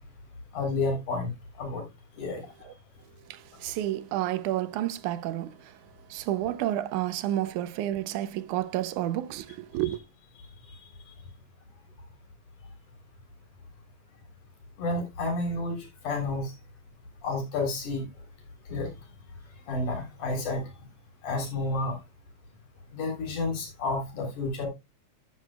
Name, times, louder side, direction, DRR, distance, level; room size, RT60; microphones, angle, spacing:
voice 1, 0.5-1.3 1.6-1.8 2.2-2.5 10.7-10.8 14.8-16.5 17.2-18.0 18.7-18.9 19.7-20.7 21.2-21.9 22.9-24.7, left 2 dB, 80° left, 5.0 m, -30 dB
voice 2, 3.3-5.8 6.1-10.0, right 13 dB, 85° right, 2.2 m, -30 dB
13.0 x 9.5 x 2.3 m
omnidirectional pair, 3.4 m